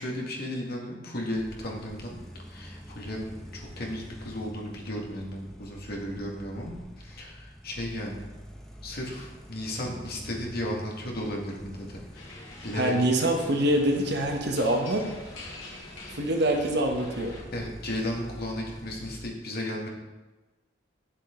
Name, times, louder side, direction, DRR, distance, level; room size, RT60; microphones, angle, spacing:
voice 1, 0.0-2.2 2.4-8.2 8.8-12.3 12.6-12.9 17.5-19.9, left 1 dB, 55° left, -1 dB, 1.9 m, -35 dB
sound 1, 1.3-19.2, equal, 5° left, 1.1 m, -46 dB
sound 2, 12.1-17.4, left 2 dB, 80° left, 2.7 m, -46 dB
voice 2, 12.7-15.1 16.1-17.4, right 1 dB, 60° right, 2 dB, 1.3 m, -25 dB
9.2 x 7.5 x 3.8 m, 1.2 s
head